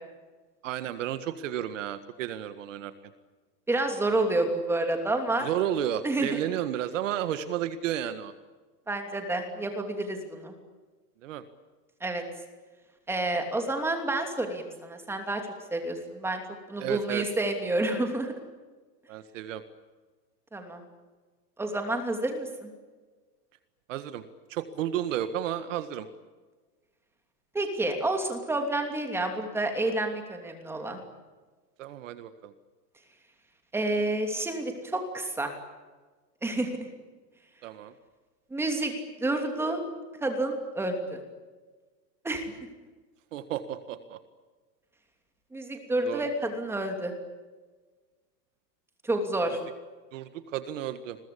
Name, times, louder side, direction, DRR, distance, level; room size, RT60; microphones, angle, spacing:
voice 1, 0.6-2.9 5.4-8.3 11.2-11.4 16.8-17.3 19.1-19.6 23.9-24.2 24.5-26.1 31.8-32.5 37.6-37.9 43.3-44.2 46.0-46.3 50.1-51.2, right 11 dB, 50° right, 10 dB, 1.8 m, -32 dB
voice 2, 3.7-5.5 6.0-6.4 8.9-10.5 12.0-12.2 13.1-15.4 15.7-16.4 16.7-18.3 20.5-20.8 21.6-22.7 27.5-31.0 33.7-35.5 36.4-36.9 38.5-38.9 39.2-39.8 40.2-41.2 42.2-42.5 45.5-47.1 49.0-49.6, right 2 dB, 5° right, 4 dB, 2.9 m, -29 dB
29.5 x 22.0 x 8.6 m, 1.4 s
supercardioid pair, 175°, 50 cm